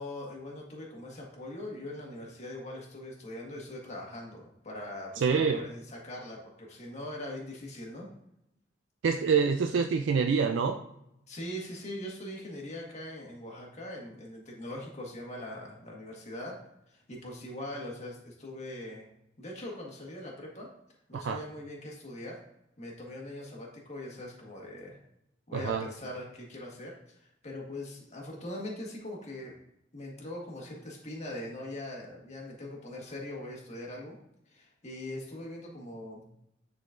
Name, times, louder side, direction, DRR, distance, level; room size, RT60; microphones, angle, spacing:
voice 1, 0.0-8.1 11.3-19.1 19.4-20.7 21.1-22.4 22.8-25.0 25.5-29.5 29.9-34.2 34.5-36.2, left 1 dB, 40° left, -1 dB, 1.5 m, -41 dB
voice 2, 5.2-5.6 9.0-10.8 21.1-21.4 25.5-25.9, right 5 dB, 70° right, 6 dB, 0.4 m, -26 dB
9.5 x 4.0 x 2.5 m, 0.80 s
head